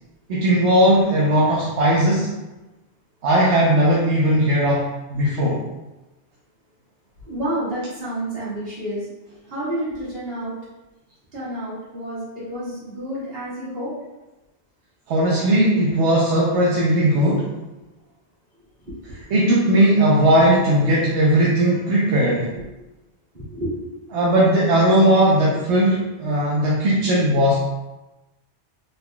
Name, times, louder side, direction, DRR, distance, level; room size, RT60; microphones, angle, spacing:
voice 1, 0.3-2.3 3.2-4.8 5.1-5.6 15.1-17.5 19.3-22.5 24.1-27.6, right 1 dB, 80° right, -5 dB, 1.0 m, -18 dB
voice 2, 7.3-9.1 9.5-10.6 11.3-13.9 18.9-19.0 22.6-22.7 23.3-23.7, right 1 dB, 60° right, -10 dB, 1.9 m, -29 dB
3.9 x 3.8 x 2.3 m, 1.0 s
omnidirectional pair, 1.1 m